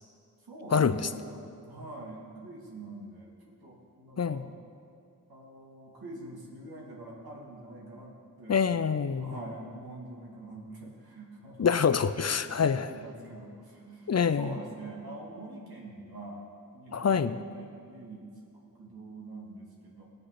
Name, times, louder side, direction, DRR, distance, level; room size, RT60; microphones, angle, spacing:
voice 1, 0.4-3.3 3.6-4.5 5.3-8.6 9.2-11.7 12.3-16.4 16.7-18.3 18.7-20.1, right 2 dB, 90° right, -4 dB, 2.6 m, -45 dB
voice 2, 8.5-9.3 11.6-12.9 14.1-14.5 16.9-17.4, left 6 dB, 45° left, 12 dB, 0.5 m, -25 dB
18.0 x 6.5 x 6.0 m, 2.4 s
cardioid pair, 50°, 36 cm